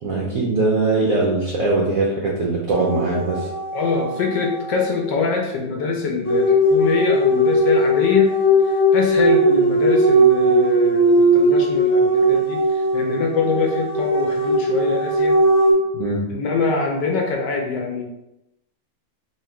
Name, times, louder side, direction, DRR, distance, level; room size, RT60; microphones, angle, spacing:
voice 1, 0.0-3.5 15.9-16.2, right 3 dB, 75° right, -3 dB, 0.7 m, -21 dB
sound 1, 2.7-5.1 6.2-15.7, equal, 15° left, 0.8 m, -18 dB
voice 2, 3.7-8.4 8.7-15.4 16.3-18.0, left 4 dB, 70° left, 1 dB, 1.1 m, -24 dB
3.0 x 2.8 x 4.4 m, 0.90 s
omnidirectional pair, 2.2 m